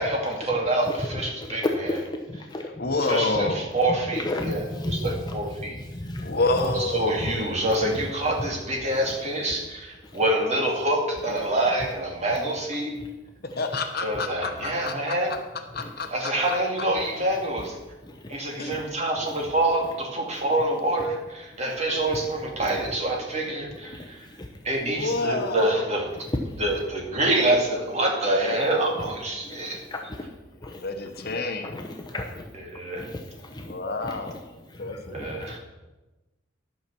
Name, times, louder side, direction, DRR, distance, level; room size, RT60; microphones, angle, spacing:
voice 1, 0.0-1.7 3.0-5.8 6.6-12.9 14.0-15.3 16.1-17.8 18.3-24.3 24.6-26.1 26.6-29.9 32.6-33.1 35.1-35.6, right 1 dB, 35° right, 0 dB, 2.2 m, -26 dB
voice 2, 0.8-1.5 1.8-3.2 3.9-6.7 7.2-7.3 9.0-9.1 10.0-10.2 11.4-11.5 12.9-13.1 13.5-13.6 15.8-15.9 18.0-18.4 18.7-18.9 19.2-19.3 20.3-20.5 22.1-22.2 22.5-22.8 23.7-24.6 26.3-26.6 29.0-29.1 29.5-30.3 30.6-30.8 31.1-31.4 31.6-32.5 32.9-33.7 34.0-34.3 34.7-35.6, left 1 dB, 20° left, 2 dB, 0.8 m, -35 dB
voice 3, 2.8-3.7 6.2-7.2 13.5-14.9 15.7-16.6 18.6-18.7 24.8-25.8 30.7-31.8 33.6-35.2, left 3 dB, 50° left, 5 dB, 1.1 m, -29 dB
12.0 x 5.9 x 6.9 m, 1.1 s
head